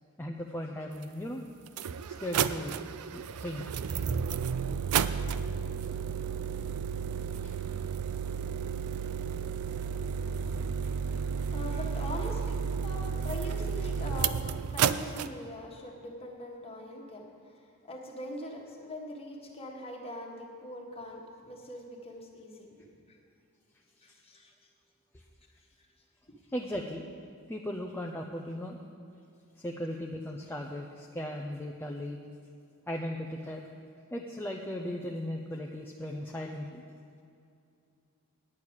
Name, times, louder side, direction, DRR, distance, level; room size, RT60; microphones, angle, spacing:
voice 1, 0.2-1.4 2.2-2.8 3.1-3.6 7.4-7.6 25.1-25.2 26.5-27.1 27.5-28.8 29.6-32.2 32.9-33.7 34.1-36.8, left 1 dB, 10° left, 0 dB, 0.5 m, -37 dB
sound 1, 1.0-1.1 1.7-15.3, right 7 dB, 85° right, 0.4 m, -32 dB
voice 2, 11.5-14.4 14.7-22.7 23.1-23.2 24.0-24.5, left 1 dB, 25° left, 0 dB, 1.5 m, -42 dB
9.8 x 6.5 x 8.7 m, 2.5 s
head